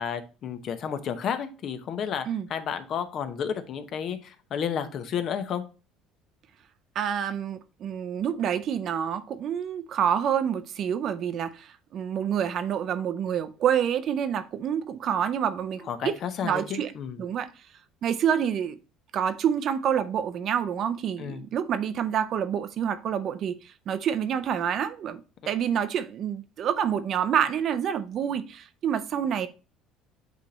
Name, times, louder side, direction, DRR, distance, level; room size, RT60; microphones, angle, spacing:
voice 1, 0.0-5.6 15.9-17.2 21.2-21.5, left 7 dB, 50° left, 0.9 m, -32 dB
voice 2, 6.9-16.1 16.4-16.9 17.2-17.5 18.0-18.7 19.1-25.2 25.5-29.5, right 8 dB, 50° right, 0.6 m, -27 dB
8.3 x 3.4 x 3.9 m
cardioid pair, 130°, 0 cm